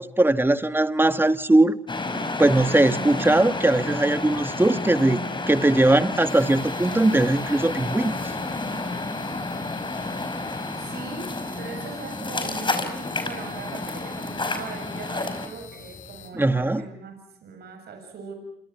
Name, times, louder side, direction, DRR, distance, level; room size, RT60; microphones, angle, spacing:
voice 1, 0.0-1.8 2.4-5.2 5.5-8.2 16.3-16.9, right 2 dB, 15° right, 11 dB, 1.8 m, -20 dB
sound 1, 1.9-15.5, left 2 dB, 30° left, 5.4 m, -30 dB
sound 2, 6.2-16.3, left 6 dB, 50° left, 6.0 m, -45 dB
voice 2, 10.8-18.3, right 5 dB, 75° right, 5 dB, 7.4 m, -40 dB
29.0 x 27.5 x 6.0 m, 0.72 s
cardioid pair, 70°, 17 cm